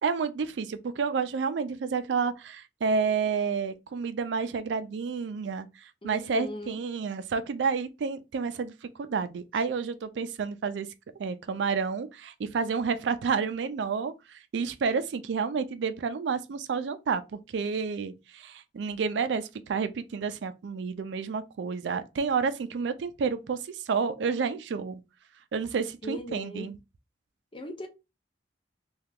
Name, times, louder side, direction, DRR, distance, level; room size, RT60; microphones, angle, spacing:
voice 1, 0.0-8.7 9.0-10.9 11.2-23.6 23.9-25.0 25.5-26.8, right 5 dB, 90° right, 0.4 m, -30 dB
voice 2, 6.0-6.8 26.0-26.7 27.5-27.9, equal, 30° left, 0.6 m, -38 dB
2.8 x 2.3 x 3.5 m
head